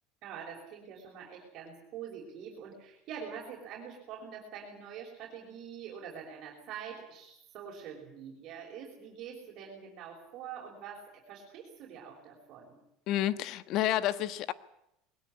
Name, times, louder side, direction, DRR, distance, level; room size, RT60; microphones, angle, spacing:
voice 1, 0.2-12.8, right 7 dB, 50° right, -2 dB, 5.9 m, -45 dB
voice 2, 13.1-14.5, left 13 dB, 55° left, 14 dB, 1.3 m, -30 dB
21.5 x 18.0 x 9.9 m, 0.81 s
supercardioid pair, 125°, 0 cm